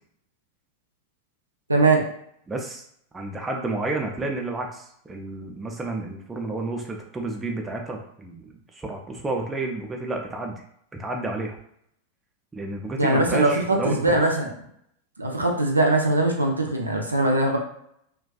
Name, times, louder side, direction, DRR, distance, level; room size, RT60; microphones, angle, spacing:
voice 1, 1.7-2.0 13.0-14.5 15.2-17.6, right 2 dB, 80° right, 1 dB, 0.4 m, -21 dB
voice 2, 2.5-2.8 3.1-10.6 11.0-11.6 12.5-14.2, right 2 dB, 15° right, 1 dB, 0.4 m, -31 dB
2.4 x 2.3 x 2.3 m, 0.71 s
figure-of-eight pair, 90°, 0 cm